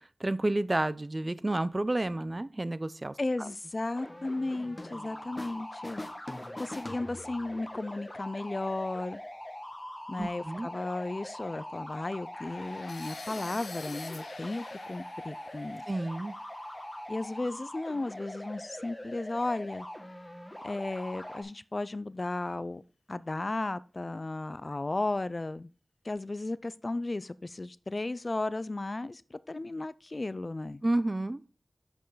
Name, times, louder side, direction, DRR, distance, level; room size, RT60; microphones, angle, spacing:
voice 1, 0.2-3.1 3.4-3.5 10.2-10.7 15.9-16.3 30.8-31.4, right 2 dB, 35° right, 0.5 m, -30 dB
voice 2, 3.2-6.0 6.6-9.2 10.1-15.8 17.1-19.9 20.6-22.8 23.1-25.7 26.0-30.8, left 2 dB, 45° left, 0.3 m, -34 dB
sound 1, 3.9-21.4, left 1 dB, 15° left, 1.4 m, -43 dB
sound 2, 4.8-5.6 5.8-7.6, left 1 dB, 30° left, 0.8 m, -43 dB
sound 3, 12.3-18.3, left 3 dB, 90° left, 0.9 m, -49 dB
6.2 x 5.3 x 3.9 m
cardioid pair, 45°, 0 cm